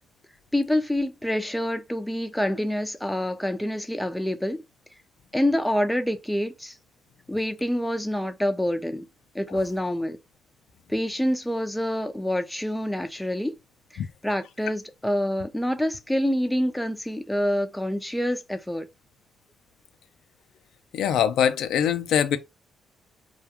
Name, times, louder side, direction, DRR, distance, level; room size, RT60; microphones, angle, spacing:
voice 1, 0.5-4.6 5.3-6.7 7.3-9.1 9.3-10.2 10.9-13.5 14.2-18.9, left 1 dB, 5° left, 0.4 m, -26 dB
voice 2, 20.9-22.4, left 9 dB, 80° left, 0.4 m, -23 dB
2.3 x 2.2 x 2.8 m
cardioid pair, 90°, 0 cm